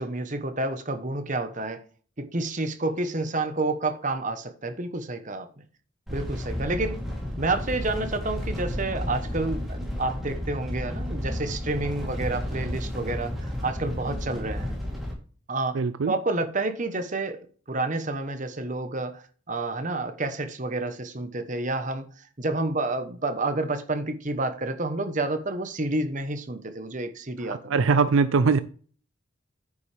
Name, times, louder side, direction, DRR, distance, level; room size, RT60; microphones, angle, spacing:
voice 1, 0.0-1.8 2.2-5.5 6.1-7.0 7.4-14.7 15.5-22.1 22.4-27.6, right 2 dB, 35° right, 1.0 m, -29 dB
sound 1, 6.1-15.1, left 1 dB, ahead, 3.0 m, -32 dB
voice 2, 15.7-16.1 27.4-28.6, right 5 dB, 70° right, 0.4 m, -22 dB
9.5 x 7.2 x 3.4 m
head